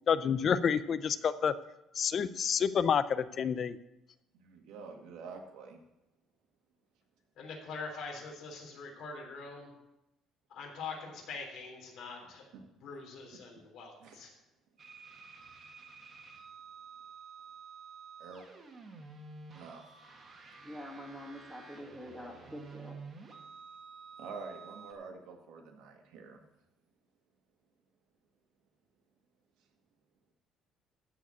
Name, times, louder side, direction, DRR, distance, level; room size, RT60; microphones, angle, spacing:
voice 1, 0.1-1.5 2.0-3.8, left 7 dB, 35° left, 14 dB, 0.5 m, -29 dB
voice 2, 4.3-5.8 14.0-14.2 18.2-18.5 19.5-19.8 24.2-26.4, right 4 dB, 80° right, 3 dB, 2.1 m, -47 dB
voice 3, 7.4-9.7 10.5-14.3, left 4 dB, 55° left, 0 dB, 3.5 m, -44 dB
sound 1, 14.8-24.9, right 5 dB, 25° right, 1.6 m, -51 dB
voice 4, 20.6-23.0, equal, 5° left, -1 dB, 1.7 m, -45 dB
14.0 x 4.9 x 8.4 m, 0.91 s
cardioid pair, 175°, 0 cm